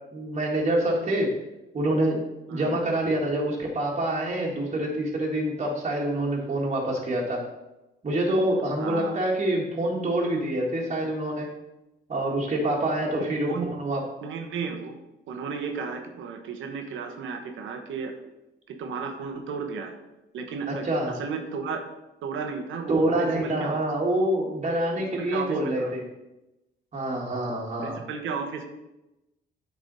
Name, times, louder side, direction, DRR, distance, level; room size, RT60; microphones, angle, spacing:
voice 1, 0.1-1.3 1.7-2.2 2.5-7.4 8.0-11.5 12.1-14.0 20.7-21.1 22.9-26.0 26.9-28.0, right 1 dB, 35° right, -3 dB, 1.9 m, -26 dB
voice 2, 8.8-9.2 13.2-13.7 14.2-15.0 15.3-18.2 18.7-20.0 20.3-21.8 22.2-23.8 24.9-25.9 27.8-28.7, right 5 dB, 80° right, 5 dB, 1.2 m, -34 dB
8.6 x 4.8 x 4.1 m, 0.96 s
cardioid pair, 90°, 20 cm